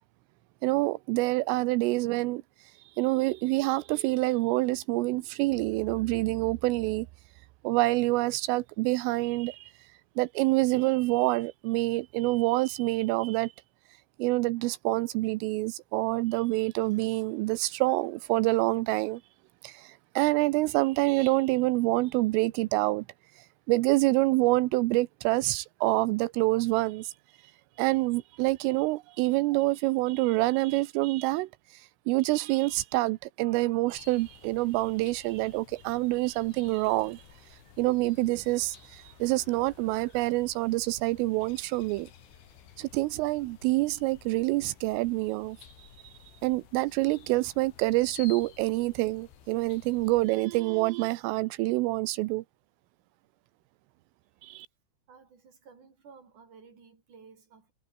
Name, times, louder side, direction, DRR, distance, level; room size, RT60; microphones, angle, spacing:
voice 1, 0.6-2.7 3.0-7.1 7.6-9.7 10.2-13.5 14.2-19.2 19.6-23.0 23.4-27.1 27.8-37.2 37.5-42.1 42.8-46.1 46.4-52.4 54.4-54.7, right 20 dB, 85° right, 3.4 m, -27 dB
sound 1, 33.9-50.3, left 9 dB, 75° left, 5.5 m, -53 dB
voice 2, 55.1-57.7, right 5 dB, 40° right, 6.4 m, -54 dB
omnidirectional pair, 5.7 m